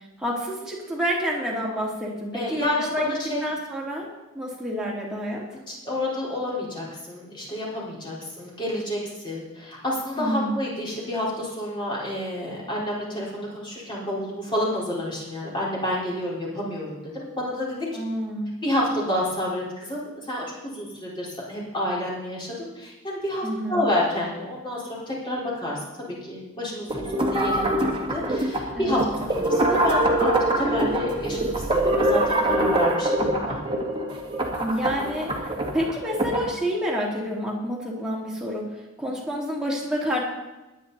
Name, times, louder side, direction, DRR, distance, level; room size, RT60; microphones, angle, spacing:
voice 1, 0.2-3.1 3.4-4.1 4.3-5.5 10.1-10.5 17.9-18.5 23.4-23.8 28.7-29.0 34.6-35.3 35.7-40.2, equal, 5° right, -4 dB, 2.9 m, -28 dB
voice 2, 2.3-3.4 5.7-17.9 18.6-29.0 29.3-33.6 39.0-39.1, left 1 dB, 20° left, -5 dB, 4.2 m, -29 dB
sound 1, 26.9-36.5, right 1 dB, 25° right, 1.9 m, -24 dB
21.5 x 9.3 x 4.1 m, 1.1 s
head